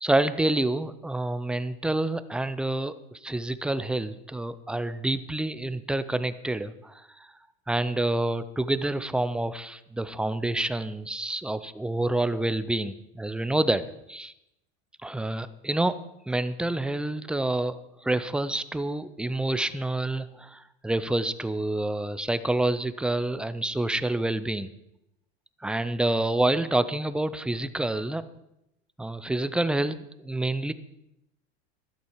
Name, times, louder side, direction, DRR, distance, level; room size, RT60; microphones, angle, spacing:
voice 1, 0.0-2.9 3.2-7.1 7.7-14.3 15.0-17.8 18.0-24.7 25.6-28.2 29.0-30.7, right 2 dB, 5° right, 13 dB, 0.4 m, -28 dB
12.5 x 11.5 x 4.6 m, 0.83 s
supercardioid pair, 125°, 34 cm